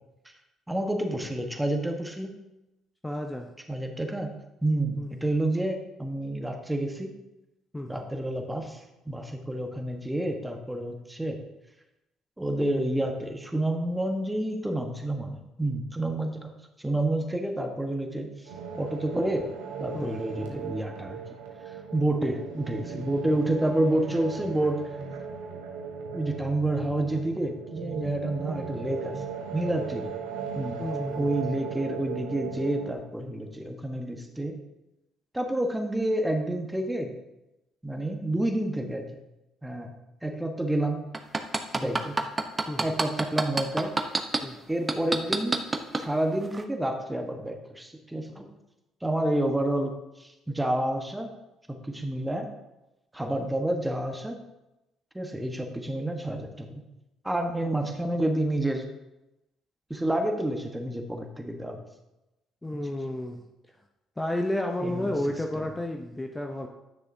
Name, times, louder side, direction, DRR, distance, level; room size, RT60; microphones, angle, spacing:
voice 1, 0.7-2.4 3.7-4.3 4.6-7.1 7.9-11.4 12.4-16.5 16.8-18.3 18.8-19.4 19.8-21.2 21.7-24.8 26.1-29.2 29.5-30.1 30.6-30.8 31.2-34.6 35.3-37.1 37.8-39.1 39.6-39.9 40.2-41.1 41.8-42.2 42.8-43.9 44.7-45.6 46.0-48.5 49.0-49.9 50.2-51.3 51.7-52.5 53.1-54.4 55.1-56.8 57.2-58.8 59.9-61.8 64.8-65.1 65.5-65.6, right 1 dB, 10° right, 4 dB, 1.3 m, -29 dB
voice 2, 3.0-3.5 5.0-5.1 7.7-7.9 19.9-20.2 30.8-31.3 41.8-42.0 42.7-42.9 44.4-44.6 62.6-63.4 64.2-66.7, left 1 dB, 15° left, 3 dB, 0.7 m, -31 dB
sound 1, 18.4-32.9, right 6 dB, 80° right, 1.1 m, -37 dB
sound 2, 41.1-44.4 44.9-46.0 46.5-46.6, right 3 dB, 25° right, 0.8 m, -25 dB
10.0 x 6.3 x 2.7 m, 0.96 s
hypercardioid pair, 60°, 0 cm